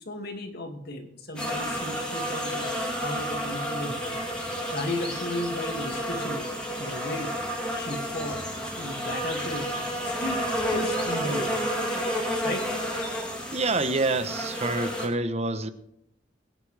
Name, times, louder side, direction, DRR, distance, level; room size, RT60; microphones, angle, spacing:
voice 1, 0.0-4.2 4.7-6.5 6.8-7.3 7.8-8.4 8.8-9.7 10.0-10.4 10.7-11.7 12.4-12.7, left 1 dB, 60° left, 2.4 m, -34 dB
sound 1, 1.3-15.1, equal, 5° left, 3.0 m, -31 dB
voice 2, 13.5-15.7, right 3 dB, 35° right, 1.0 m, -27 dB
22.5 x 10.0 x 3.4 m
head